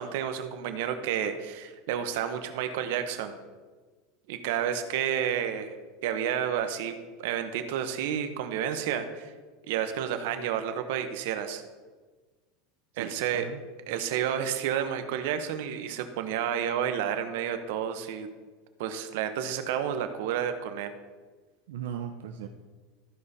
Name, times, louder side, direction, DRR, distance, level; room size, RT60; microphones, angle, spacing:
voice 1, 0.0-3.3 4.3-5.8 6.0-9.3 9.7-11.6 13.0-13.5 13.9-18.3 18.8-20.9, right 9 dB, 70° right, 8 dB, 0.9 m, -30 dB
voice 2, 12.9-13.6 21.7-22.5, right 8 dB, 90° right, 4 dB, 0.6 m, -38 dB
13.5 x 5.1 x 4.1 m, 1.4 s
supercardioid pair, 150°, 0 cm